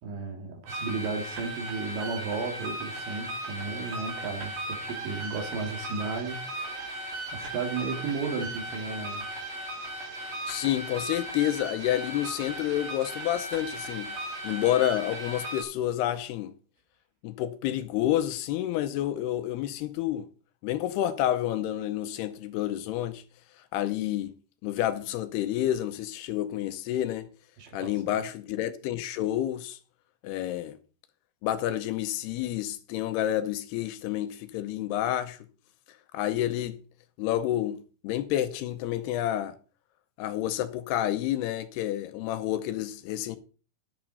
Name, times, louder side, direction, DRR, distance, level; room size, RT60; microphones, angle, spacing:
voice 1, 0.0-6.9 7.3-9.3 27.6-28.3, right 4 dB, 85° right, 4.6 m, -34 dB
sound 1, 0.7-15.6, right 1 dB, 60° right, 4.7 m, -37 dB
voice 2, 10.5-14.1 14.4-16.5 17.2-20.3 20.6-23.2 23.7-24.3 24.6-27.3 27.7-29.8 30.2-30.8 31.4-35.4 36.1-36.8 37.2-39.6 40.2-43.4, left 12 dB, 80° left, 2.7 m, -29 dB
11.5 x 10.5 x 4.1 m
omnidirectional pair, 4.9 m